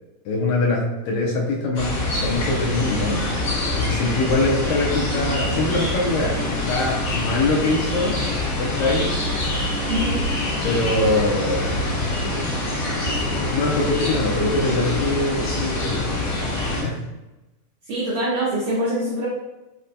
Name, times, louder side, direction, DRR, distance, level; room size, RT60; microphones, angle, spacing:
voice 1, 0.2-1.9 2.2-3.2 3.7-8.2 8.6-9.1 10.6-11.9 13.5-16.5 16.8-17.0, left 2 dB, 85° left, -3 dB, 1.6 m, -23 dB
sound 1, 1.8-16.8, left 1 dB, 65° left, 1.8 m, -25 dB
voice 2, 9.9-10.2 17.8-19.3, right 1 dB, 75° right, -7 dB, 1.5 m, -24 dB
5.6 x 2.2 x 2.6 m, 1.0 s
omnidirectional pair, 3.8 m